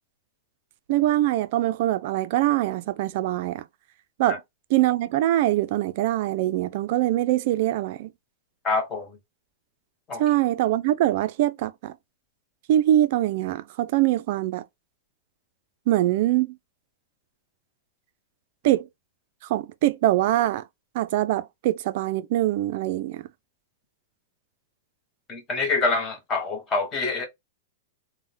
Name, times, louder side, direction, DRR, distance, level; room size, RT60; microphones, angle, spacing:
voice 1, 0.9-3.6 4.2-4.4 4.7-8.1 10.2-11.9 12.7-14.6 15.9-16.5 18.6-18.9 19.5-20.6 20.9-23.3, right 14 dB, 45° right, 0.3 m, -23 dB
voice 2, 8.6-9.1 10.1-10.2 25.3-27.3, left 3 dB, 15° left, 0.7 m, -26 dB
3.4 x 2.0 x 2.6 m
supercardioid pair, 170°, 0 cm